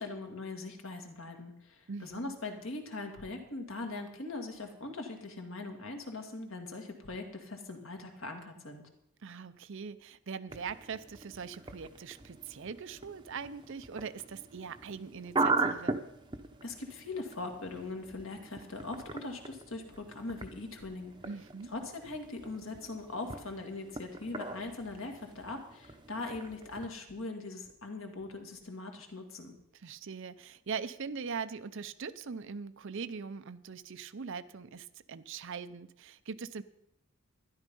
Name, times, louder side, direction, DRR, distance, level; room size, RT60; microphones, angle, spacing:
voice 1, 0.0-8.8 16.6-21.1 21.7-29.5, left 3 dB, 60° left, 4 dB, 2.0 m, -41 dB
voice 2, 1.9-2.3 9.2-16.0 21.2-21.7 29.7-36.6, right 5 dB, 55° right, 13 dB, 0.6 m, -41 dB
sound 1, 10.5-26.9, right 3 dB, 20° right, 0.8 m, -39 dB
13.0 x 11.0 x 5.4 m, 0.79 s
head